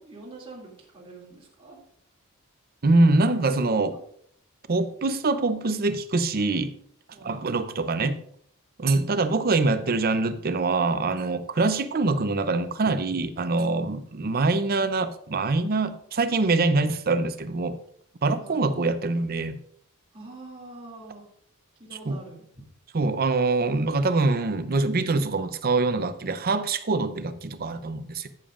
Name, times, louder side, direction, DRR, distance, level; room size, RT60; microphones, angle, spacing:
voice 1, 0.0-1.8 3.9-4.0 7.1-7.5 18.4-18.8 20.1-21.2 21.8-22.4, right 2 dB, 25° right, 2.6 m, -45 dB
voice 2, 2.8-4.0 4.7-6.7 7.2-8.2 8.8-17.8 18.2-19.6 22.0-22.2 22.9-28.3, right 3 dB, 45° right, 0.6 m, -24 dB
14.0 x 7.0 x 2.5 m
head